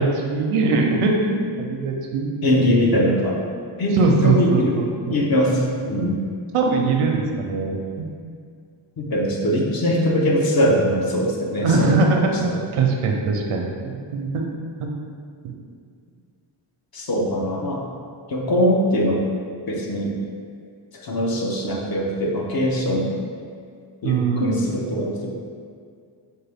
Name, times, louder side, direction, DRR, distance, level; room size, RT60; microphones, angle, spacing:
voice 1, 0.0-2.7 3.9-4.9 5.5-6.1 6.5-8.1 11.6-14.5 14.8-14.9 15.4-15.5 24.0-24.6, right 3 dB, 90° right, 1 dB, 0.6 m, -22 dB
voice 2, 2.4-3.4 3.8-4.8 5.1-6.2 9.0-12.0 16.9-17.8 18.3-19.2 19.7-20.2 21.0-23.1 24.0-25.3, equal, 45° left, -1 dB, 0.7 m, -21 dB
4.6 x 2.2 x 3.4 m, 2.2 s
cardioid pair, 85°, 49 cm